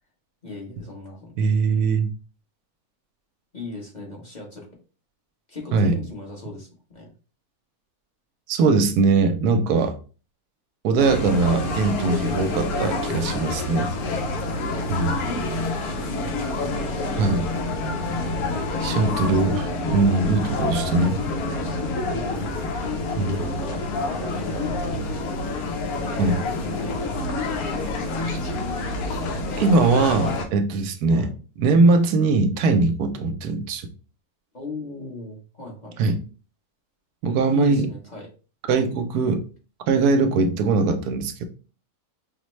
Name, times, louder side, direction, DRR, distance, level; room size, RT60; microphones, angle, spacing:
voice 1, 0.4-1.5 3.5-4.7 5.5-6.7 6.9-7.1 15.2-16.3 16.6-17.2 19.1-19.5 19.9-20.3 22.1-22.6 23.2-25.5 25.9-26.3 26.6-27.8 28.2-28.9 31.1-31.4 34.5-35.9 37.5-38.3, left 2 dB, 30° left, 1.1 m, -38 dB
voice 2, 1.4-2.1 5.7-6.0 8.5-10.0 10.8-13.9 14.9-15.2 17.2-17.5 18.8-21.2 23.2-23.4 26.2-26.4 29.6-31.3 31.6-33.9 36.0-36.2 37.2-37.9 38.7-39.4 39.9-41.4, right 3 dB, 85° right, 1.1 m, -21 dB
sound 1, 11.0-30.5, left 2 dB, 75° left, 1.2 m, -27 dB
5.2 x 2.1 x 3.1 m
omnidirectional pair, 1.6 m